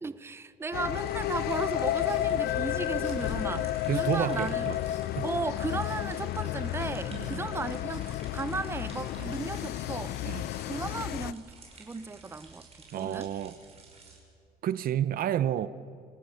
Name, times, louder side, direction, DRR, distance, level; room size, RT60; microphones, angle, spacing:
voice 1, 0.0-4.7 5.2-12.7 12.9-13.3, right 3 dB, 15° right, 0.7 m, -35 dB
sound 1, 0.7-11.3, left 13 dB, 70° left, 0.6 m, -32 dB
sound 2, 0.9-14.2, right 4 dB, 35° right, 5.3 m, -53 dB
sound 3, 1.4-11.1, left 4 dB, 45° left, 3.7 m, -54 dB
voice 2, 3.5-4.8 5.2-5.3 7.1-7.5 9.2-9.3 10.2-10.4 12.9-13.6 14.6-15.7, right 11 dB, 60° right, 0.8 m, -30 dB
26.0 x 19.0 x 6.6 m
cardioid pair, 110°, 17 cm